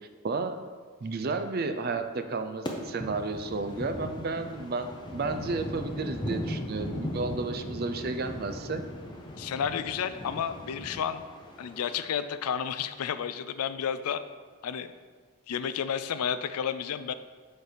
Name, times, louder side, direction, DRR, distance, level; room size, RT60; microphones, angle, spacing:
voice 1, 0.2-0.6 1.0-8.8, right 3 dB, 45° right, 8 dB, 0.4 m, -32 dB
sound 1, 2.7-12.0, left 1 dB, 20° left, 0.6 m, -38 dB
voice 2, 9.4-11.2 11.6-14.2 14.6-14.9 15.5-17.1, left 8 dB, 85° left, 12 dB, 0.4 m, -31 dB
6.8 x 4.5 x 5.0 m, 1.6 s
head